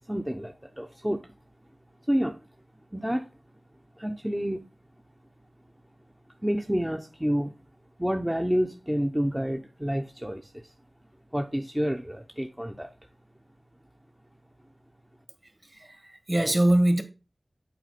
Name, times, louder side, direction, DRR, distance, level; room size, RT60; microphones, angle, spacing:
voice 1, 0.1-1.3 2.1-2.4 2.9-3.3 4.0-4.7 6.4-7.5 8.0-10.7 11.3-12.9, equal, 10° right, 0.8 m, -29 dB
voice 2, 15.6-17.0, right 1 dB, 35° right, 1.8 m, -23 dB
7.9 x 4.3 x 4.1 m
cardioid pair, 40°, 0 cm